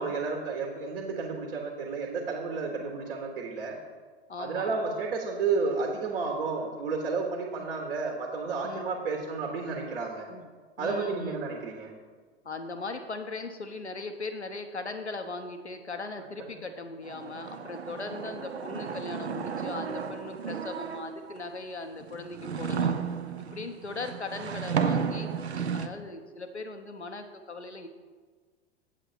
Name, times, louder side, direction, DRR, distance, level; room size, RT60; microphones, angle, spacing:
voice 1, 0.0-3.8 4.4-10.3 10.8-11.9 16.2-16.5, right 4 dB, 60° right, 1 dB, 1.6 m, -32 dB
voice 2, 4.3-4.7 7.6-7.7 8.6-8.9 10.3-10.5 10.8-11.5 12.4-23.0 23.5-27.9, left 3 dB, 90° left, 7 dB, 0.7 m, -39 dB
sound 1, 17.1-21.4 22.0-25.9, right 6 dB, 80° right, 0.6 m, -33 dB
8.4 x 8.0 x 4.4 m, 1.5 s
figure-of-eight pair, 90°, 33 cm